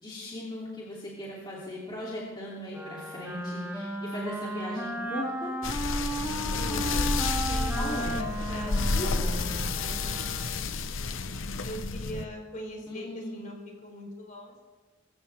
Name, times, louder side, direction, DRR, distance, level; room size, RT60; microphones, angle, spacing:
voice 1, 0.0-5.5 7.8-8.2 12.9-13.4, left 1 dB, 25° left, -6 dB, 2.9 m, -38 dB
Wind instrument woodwind instrument, 2.7-10.8, right 1 dB, 10° right, 1.8 m, -35 dB
sound 1, 5.6-12.3, left 3 dB, 70° left, 0.8 m, -30 dB
voice 2, 6.4-6.9 7.5-11.2 11.6-14.5, equal, 40° left, 1 dB, 3.8 m, -41 dB
22.0 x 15.5 x 3.5 m, 1.3 s
head